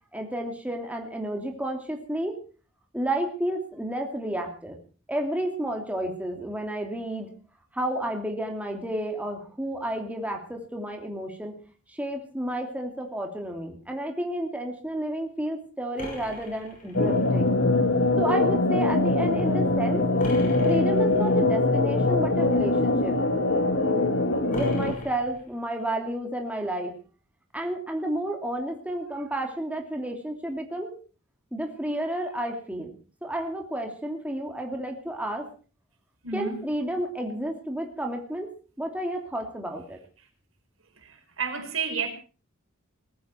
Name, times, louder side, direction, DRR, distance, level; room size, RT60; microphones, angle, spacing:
voice 1, 0.1-2.4 2.9-4.8 5.1-7.3 7.7-11.6 11.9-17.6 18.2-20.0 20.6-23.2 24.5-26.9 27.5-31.0 31.5-32.9 33.2-35.5 36.3-38.5 38.8-40.0, right 1 dB, 5° right, 2 dB, 2.9 m, -31 dB
sound 1, 16.0-17.4 20.2-21.3 24.5-25.8, left 1 dB, 40° left, 6.1 m, -40 dB
sound 2, 16.9-24.9, left 2 dB, 65° left, 1.5 m, -23 dB
voice 2, 36.2-36.6 41.0-42.1, right 6 dB, 80° right, 5 dB, 4.4 m, -31 dB
20.0 x 14.5 x 4.5 m, 0.39 s
head